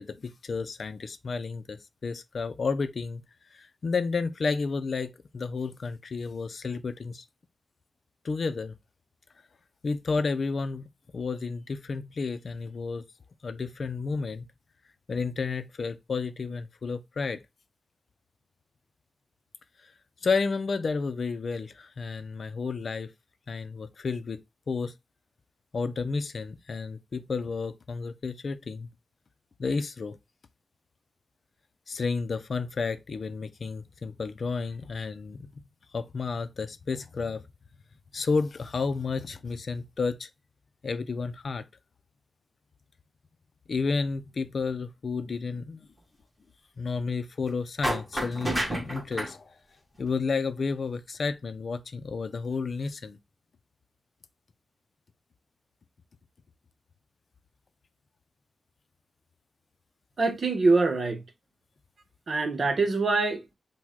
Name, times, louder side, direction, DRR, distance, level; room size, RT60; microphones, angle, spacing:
voice 1, 0.0-3.2 3.5-7.2 8.2-8.7 9.8-10.9 11.1-13.0 13.4-14.5 15.1-17.4 20.2-23.1 23.5-24.4 24.7-24.9 25.7-28.9 29.6-30.2 31.9-35.5 35.9-37.4 38.1-40.3 40.8-41.6 43.7-45.9 46.8-49.5 50.0-53.2, left 4 dB, 60° left, 0.5 m, -31 dB
sound 1, 47.8-49.3, right 1 dB, 15° right, 1.9 m, -30 dB
voice 2, 60.2-61.2 62.3-63.4, right 3 dB, 55° right, 1.0 m, -24 dB
6.1 x 2.3 x 3.6 m
cardioid pair, 80°, 0 cm